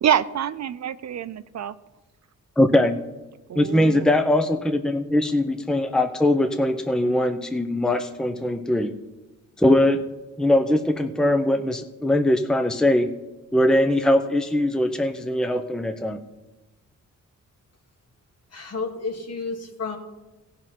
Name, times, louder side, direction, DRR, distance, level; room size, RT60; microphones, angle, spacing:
voice 1, 0.0-1.7 3.5-4.1, right 9 dB, 55° right, 14 dB, 0.5 m, -26 dB
voice 2, 2.6-3.0 3.6-8.9 9.6-10.0 10.4-13.1 13.5-16.2, left 1 dB, ahead, 8 dB, 0.8 m, -21 dB
voice 3, 18.5-20.0, left 4 dB, 50° left, 3 dB, 2.2 m, -31 dB
15.5 x 5.6 x 6.1 m, 1.1 s
cardioid pair, 65°, 33 cm